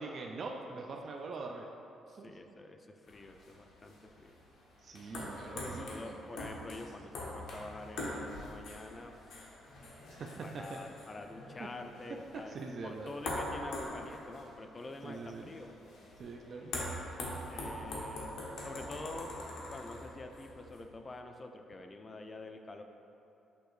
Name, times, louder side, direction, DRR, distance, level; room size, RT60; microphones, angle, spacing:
voice 1, 0.0-1.7 2.1-2.3 4.8-6.2 10.2-10.8 12.5-13.1 15.0-15.5 16.2-16.7, right 3 dB, 55° right, 1 dB, 0.3 m, -43 dB
voice 2, 2.2-4.4 5.5-9.1 9.4-9.8 10.4-15.7 17.1-19.3 19.7-22.8, left 2 dB, 30° left, 5 dB, 0.4 m, -47 dB
sound 1, 3.1-20.8, left 1 dB, 85° left, 0.8 m, -44 dB
6.7 x 2.6 x 3.1 m, 2.9 s
cardioid pair, 90°, 0 cm